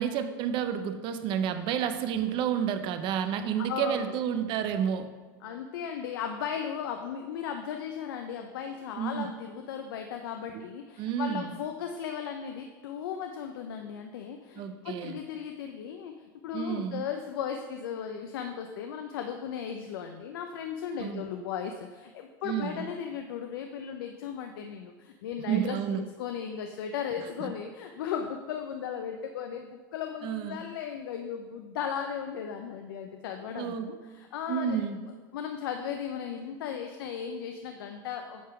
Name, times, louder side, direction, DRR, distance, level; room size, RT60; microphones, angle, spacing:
voice 1, 0.0-5.1 9.0-9.3 10.5-10.6 11.0-11.5 14.6-15.2 16.5-17.1 21.0-21.3 22.4-22.9 25.5-26.1 27.4-27.5 30.2-30.6 33.5-33.9 34.5-35.0, right 8 dB, 45° right, 9 dB, 0.7 m, -30 dB
voice 2, 3.6-4.1 5.4-34.8 35.3-38.5, left 8 dB, 80° left, 5 dB, 0.6 m, -36 dB
8.5 x 3.7 x 5.7 m, 1.4 s
supercardioid pair, 125°, 12 cm